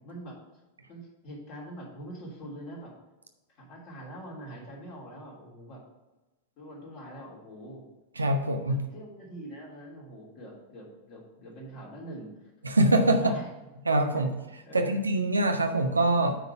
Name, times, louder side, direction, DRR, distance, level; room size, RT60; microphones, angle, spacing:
voice 1, 0.9-2.9 3.5-5.8 6.6-7.8 8.7-12.3 13.0-13.5 14.1-14.3 14.6-14.9, right 1 dB, 40° left, -3 dB, 3.3 m, -44 dB
voice 2, 8.2-8.8 12.6-13.3 13.9-14.3 14.7-16.4, right 1 dB, 80° right, 5 dB, 0.8 m, -24 dB
9.0 x 4.0 x 6.7 m, 1.1 s
figure-of-eight pair, 90°, 0 cm